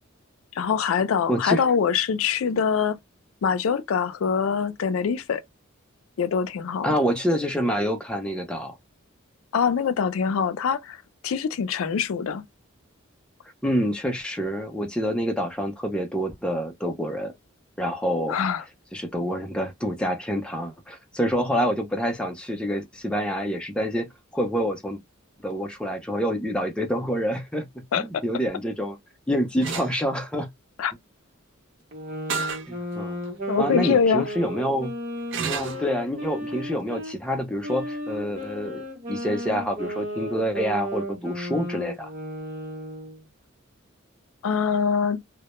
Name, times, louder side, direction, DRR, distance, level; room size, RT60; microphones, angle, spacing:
voice 1, 0.6-3.0 3.4-5.4 6.2-6.9 9.5-11.0 11.2-12.5 18.3-18.6 27.9-28.2 30.8-30.9 33.5-34.2 44.4-45.2, left 6 dB, 80° left, 0.4 m, -24 dB
voice 2, 1.3-1.6 6.8-8.7 13.6-17.3 17.8-18.4 18.9-25.0 25.4-27.7 28.0-29.0 29.3-30.5 32.7-33.2 33.6-34.9 35.4-42.1, equal, 5° left, 0.4 m, -27 dB
sound 1, 29.6-29.9 32.3-32.7 33.2-33.3 35.3-35.8, right 5 dB, 60° right, 0.4 m, -29 dB
sound 2, 31.9-37.1 37.6-43.2, equal, 40° right, 0.8 m, -34 dB
2.1 x 2.0 x 2.9 m
head